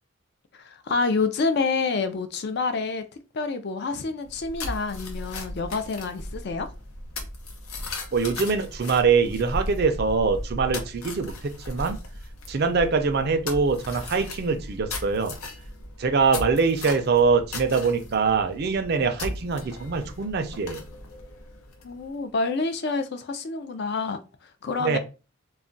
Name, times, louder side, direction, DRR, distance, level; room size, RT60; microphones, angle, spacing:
voice 1, 0.5-3.0 3.3-6.7 21.8-25.0, left 4 dB, 50° left, 0.4 m, -28 dB
sound 1, 4.2-22.1, left 2 dB, 85° left, 0.7 m, -37 dB
voice 2, 8.1-12.0 12.5-15.4 16.0-20.8 24.8-25.0, right 5 dB, 45° right, 0.4 m, -23 dB
2.3 x 2.2 x 3.8 m
head